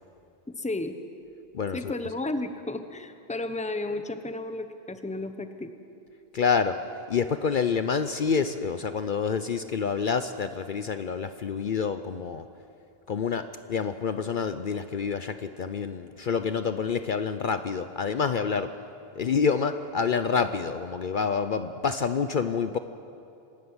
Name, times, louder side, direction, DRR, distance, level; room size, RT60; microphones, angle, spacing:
voice 1, 0.5-0.9 1.7-5.7, left 2 dB, 5° left, 8 dB, 0.9 m, -33 dB
voice 2, 1.5-1.9 6.3-6.8 7.1-12.5 13.1-18.7 19.2-22.8, left 6 dB, 55° left, 10 dB, 0.8 m, -27 dB
25.0 x 13.0 x 9.7 m, 2.7 s
omnidirectional pair, 1.1 m